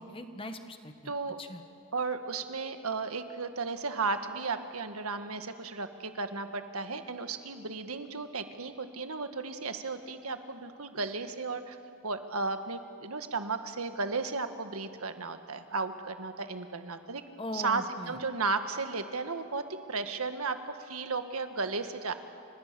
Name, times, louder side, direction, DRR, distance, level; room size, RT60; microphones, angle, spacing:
voice 1, 0.0-1.1 1.4-1.6 17.4-18.2, left 1 dB, 25° left, 7 dB, 1.5 m, -40 dB
voice 2, 1.0-1.4 1.9-11.8 12.0-17.2 17.5-22.1, right 4 dB, 90° right, 8 dB, 1.7 m, -34 dB
29.5 x 26.0 x 6.9 m, 2.5 s
head